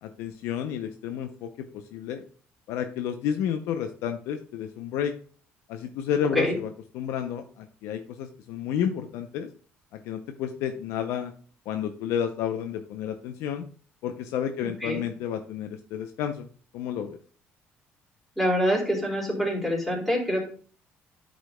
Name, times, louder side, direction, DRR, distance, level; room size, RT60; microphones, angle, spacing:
voice 1, 0.0-2.2 2.7-5.1 5.7-9.5 9.9-11.3 11.7-13.6 14.0-16.5 16.7-17.2, left 9 dB, 85° left, 7 dB, 0.6 m, -31 dB
voice 2, 14.6-15.0 18.4-20.4, equal, ahead, -4 dB, 3.7 m, -26 dB
11.5 x 5.1 x 2.2 m, 0.43 s
cardioid pair, 110°, 5 cm